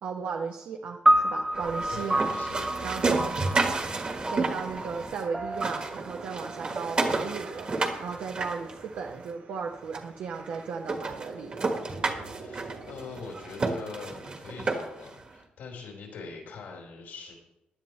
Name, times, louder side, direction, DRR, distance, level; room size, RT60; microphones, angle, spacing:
voice 1, 0.0-2.3 2.8-3.4 4.3-7.7 8.0-11.6, right 5 dB, 70° right, 2 dB, 1.0 m, -36 dB
sound 1, 1.1-7.5, right 1 dB, 10° right, 0.7 m, -29 dB
sound 2, 1.5-5.2 5.5-9.3 9.9-10.0 10.5-10.6 10.9-15.1, right 3 dB, 35° right, 1.5 m, -31 dB
voice 2, 1.9-2.7 12.3-17.3, left 4 dB, 85° left, -1 dB, 4.4 m, -42 dB
sound 3, 2.1-13.8, right 4 dB, 90° right, 4.0 m, -47 dB
16.0 x 11.0 x 3.3 m, 0.91 s
wide cardioid pair, 155°, 3 cm